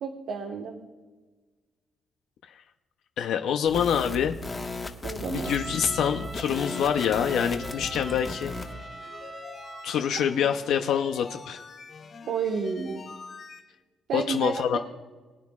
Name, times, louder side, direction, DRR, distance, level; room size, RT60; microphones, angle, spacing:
voice 1, 0.0-0.8 5.0-5.6 12.3-13.0 14.1-14.8, right 5 dB, 75° right, 2 dB, 1.3 m, -31 dB
voice 2, 3.2-4.4 5.3-8.5 9.8-11.6 14.1-14.8, left 8 dB, 80° left, 5 dB, 0.7 m, -26 dB
sound 1, 3.7-8.7, left 3 dB, 25° left, 1.4 m, -36 dB
Trumpet, 5.4-10.2, right 2 dB, 25° right, 1.0 m, -42 dB
sound 2, 6.7-13.6, left 4 dB, 50° left, 2.5 m, -46 dB
23.0 x 9.5 x 2.4 m, 1.3 s
cardioid pair, 90°, 0 cm